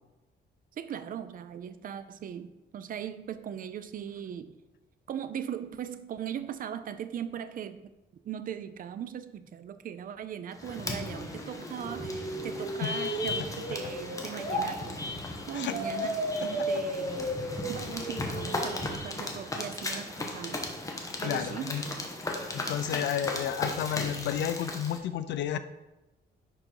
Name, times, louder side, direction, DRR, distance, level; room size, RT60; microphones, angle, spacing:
voice 1, 0.7-4.5 5.1-7.9 8.2-15.0 15.5-20.6 21.2-21.8, right 9 dB, 50° right, 12 dB, 0.5 m, -39 dB
sound 1, 10.5-25.0, left 2 dB, 20° left, 1.0 m, -36 dB
sound 2, 11.8-14.7 15.7-18.7, right 1 dB, 35° left, 2.5 m, -34 dB
voice 2, 12.8-13.2 15.5-15.8 16.4-16.7 21.2-21.8 22.5-25.6, left 10 dB, 75° left, 11 dB, 0.5 m, -32 dB
11.0 x 4.0 x 4.6 m, 1.0 s
cardioid pair, 155°, 19 cm